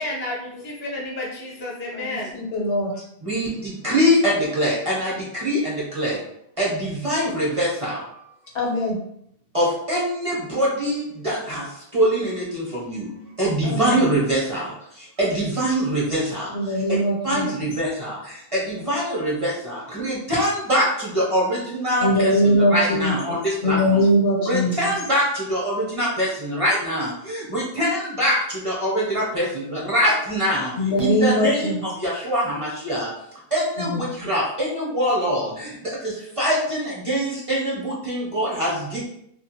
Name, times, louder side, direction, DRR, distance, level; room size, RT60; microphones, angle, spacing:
voice 1, 0.0-2.3, left 2 dB, 15° left, -3 dB, 0.4 m, -31 dB
voice 2, 1.9-2.9 8.5-9.0 13.6-14.0 16.5-17.5 22.0-23.4 23.6-24.8 30.8-31.8 33.8-34.0, equal, 85° left, -2 dB, 1.1 m, -21 dB
voice 3, 3.2-5.1 5.4-6.2 6.6-8.0 9.5-11.0 11.2-11.6 11.9-13.0 13.4-14.6 15.2-16.5 17.2-18.2 18.7-20.9 21.1-23.8 24.4-25.2 25.5-28.4 28.6-29.4 29.7-30.7 31.0-31.7 32.0-33.1 33.5-35.5 36.0-39.1, equal, 35° right, -6 dB, 0.7 m, -23 dB
2.5 x 2.4 x 2.8 m, 0.72 s
omnidirectional pair, 1.2 m